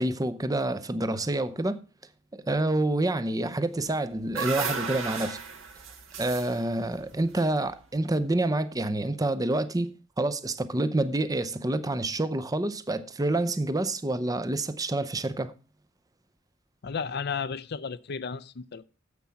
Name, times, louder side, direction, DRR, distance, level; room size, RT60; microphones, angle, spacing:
voice 1, 0.0-1.8 2.3-5.4 6.2-15.5, right 2 dB, 20° right, 0.6 m, -28 dB
sound 1, 3.9-8.1, right 5 dB, 80° right, 1.6 m, -36 dB
voice 2, 16.8-18.8, left 5 dB, 55° left, 0.6 m, -33 dB
9.4 x 7.5 x 5.7 m
head